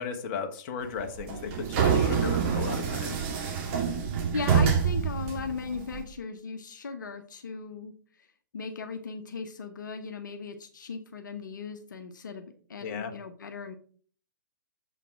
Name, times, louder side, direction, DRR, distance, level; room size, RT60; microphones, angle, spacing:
voice 1, 0.0-3.2 12.8-13.1, left 6 dB, 35° left, 5 dB, 1.4 m, -36 dB
sound 1, 1.0-6.0, right 6 dB, 35° right, 2.0 m, -26 dB
voice 2, 4.3-7.9 8.5-13.7, left 5 dB, 65° left, 6 dB, 1.1 m, -37 dB
7.4 x 5.8 x 4.6 m, 0.44 s
figure-of-eight pair, 125°, 11 cm